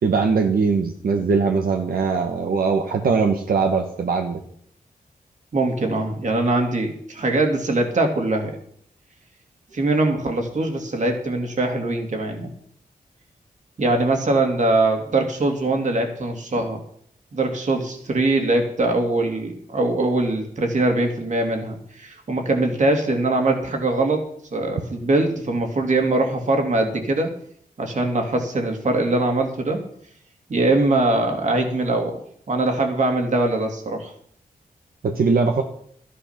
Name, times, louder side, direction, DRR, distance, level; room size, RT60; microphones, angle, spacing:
voice 1, 0.0-4.4 35.0-35.6, right 5 dB, 80° right, 3 dB, 1.3 m, -21 dB
voice 2, 5.5-8.5 9.7-12.5 13.8-16.8 17.3-27.3 27.8-29.8 30.5-32.2 32.5-34.1, right 2 dB, 55° right, 3 dB, 2.6 m, -22 dB
13.5 x 10.0 x 5.9 m, 0.64 s
wide cardioid pair, 135°, 15 cm